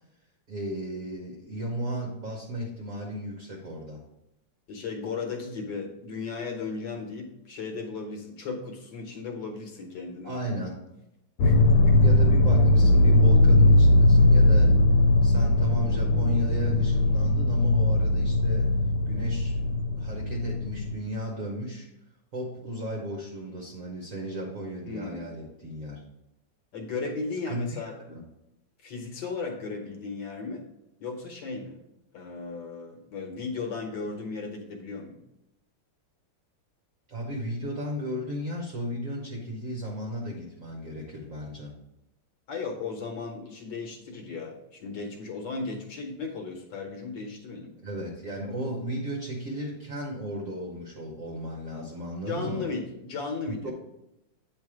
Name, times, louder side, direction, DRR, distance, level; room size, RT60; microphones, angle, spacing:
voice 1, 0.5-4.0 10.2-10.8 12.0-14.8 15.2-18.7 19.0-21.9 22.3-26.0 27.5-28.2 37.1-41.7 47.8-52.7 53.6-53.7, equal, 55° right, -1 dB, 1.0 m, -35 dB
voice 2, 4.7-10.3 11.4-12.0 24.8-25.3 26.7-28.0 28.8-30.6 31.0-31.8 32.1-35.2 42.5-47.7 52.3-53.7, left 4 dB, 60° left, 2 dB, 1.5 m, -35 dB
sound 1, 11.4-20.9, left 2 dB, 85° left, 1.5 m, -20 dB
8.4 x 3.3 x 4.8 m, 0.88 s
omnidirectional pair, 2.4 m